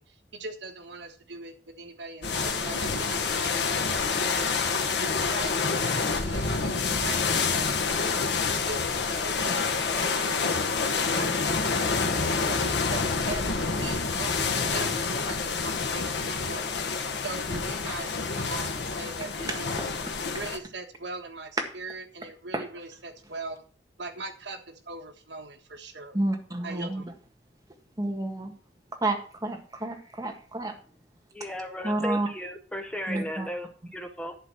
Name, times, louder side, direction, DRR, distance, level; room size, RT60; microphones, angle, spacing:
voice 1, 0.0-4.5 5.0-8.2 8.6-12.0 12.4-16.8 17.1-19.7 20.3-23.6 24.0-26.2 26.6-27.1, right 3 dB, 80° right, 1.4 m, -40 dB
sound 1, 2.2-20.6, left 4 dB, 75° left, 1.2 m, -28 dB
voice 2, 26.1-27.0 28.0-28.5 29.0-30.7 31.8-32.3 33.1-33.5, right 2 dB, 20° right, 1.6 m, -30 dB
voice 3, 31.3-34.4, equal, 5° left, 0.9 m, -36 dB
11.0 x 4.2 x 7.7 m
head